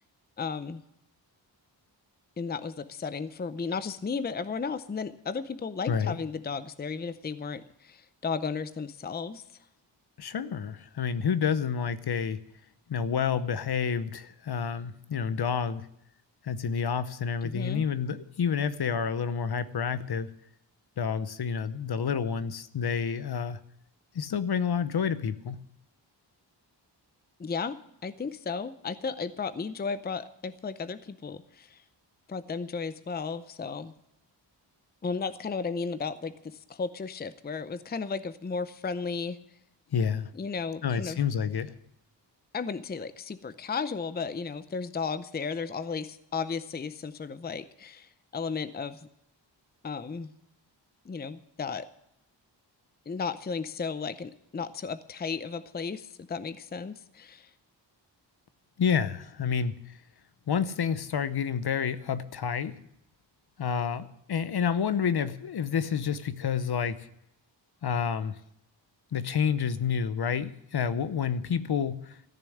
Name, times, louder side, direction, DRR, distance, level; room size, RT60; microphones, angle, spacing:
voice 1, 0.4-0.8 2.4-9.4 17.4-17.8 27.4-27.8 28.0-31.8 32.3-33.9 35.0-39.4 40.4-41.2 42.5-49.0 49.8-50.3 51.1-51.9 53.1-57.5, left 5 dB, 20° left, 14 dB, 0.6 m, -34 dB
voice 2, 5.9-6.2 10.2-12.4 12.9-15.9 16.4-20.3 21.0-23.6 24.1-25.6 39.9-40.3 40.8-41.7 58.8-60.0 60.5-62.7 63.6-67.1 67.8-68.3 69.1-72.2, left 7 dB, 60° left, 14 dB, 0.8 m, -29 dB
14.5 x 6.8 x 9.8 m, 0.78 s
wide cardioid pair, 115°, 44 cm